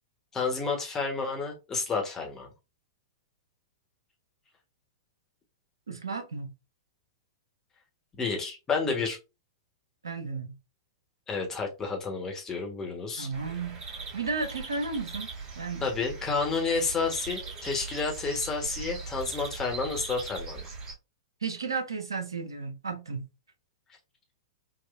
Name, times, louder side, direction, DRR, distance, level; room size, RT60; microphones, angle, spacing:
voice 1, 0.3-2.5 8.2-9.2 11.3-13.3 15.8-20.7, left 4 dB, 20° left, 1.2 m, -30 dB
voice 2, 5.9-6.5 10.0-10.6 13.2-13.8 14.1-15.9 21.4-23.3, right 4 dB, 85° right, 0.9 m, -34 dB
sound 1, 13.3-20.9, right 4 dB, 30° right, 1.9 m, -40 dB
3.9 x 2.4 x 2.5 m
figure-of-eight pair, 105°, 2 cm